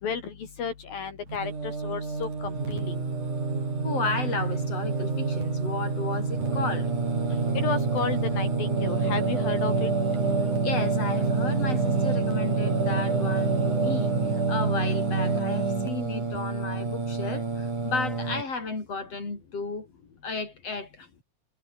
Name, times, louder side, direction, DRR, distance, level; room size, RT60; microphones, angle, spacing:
voice 1, 0.0-3.0 7.6-9.9, left 6 dB, 75° left, 5.6 m, -33 dB
Singing, 1.3-18.4, right 4 dB, 55° right, 7.9 m, -27 dB
voice 2, 3.8-6.9 10.6-19.9 20.2-21.1, left 4 dB, 40° left, 7.9 m, -33 dB
omnidirectional pair, 4.1 m